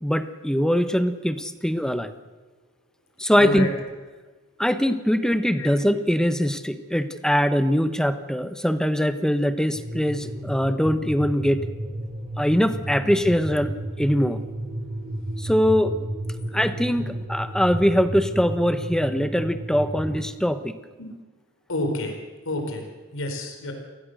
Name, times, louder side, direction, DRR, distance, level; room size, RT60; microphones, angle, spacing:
voice 1, 0.0-2.1 3.2-3.7 4.6-11.6 12.4-14.4 15.4-15.9 16.5-20.8, equal, 5° left, 10 dB, 1.1 m, -22 dB
voice 2, 3.3-3.7 5.6-5.7 16.5-16.6 21.0-21.1 21.7-22.1 22.4-22.8 23.1-23.7, left 1 dB, 65° left, 4 dB, 4.3 m, -28 dB
sound 1, 9.7-20.2, right 1 dB, 20° right, 3.9 m, -32 dB
28.5 x 19.5 x 6.6 m, 1.3 s
head